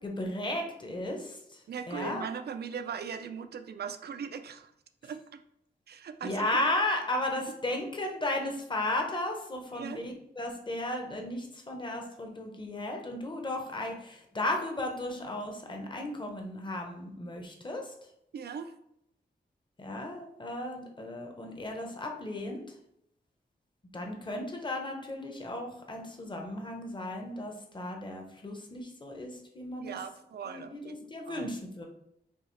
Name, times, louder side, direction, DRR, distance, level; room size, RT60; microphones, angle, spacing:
voice 1, 0.0-1.6 1.9-2.3 6.2-17.9 19.8-22.7 23.9-30.0 30.5-31.8, left 1 dB, 25° left, 2 dB, 0.8 m, -35 dB
voice 2, 1.7-4.7 5.0-5.2 5.9-6.6 9.7-10.0 18.3-18.7 29.8-31.6, right 6 dB, 65° right, 8 dB, 0.4 m, -39 dB
5.4 x 2.4 x 3.2 m, 0.77 s
wide cardioid pair, 110°, 18 cm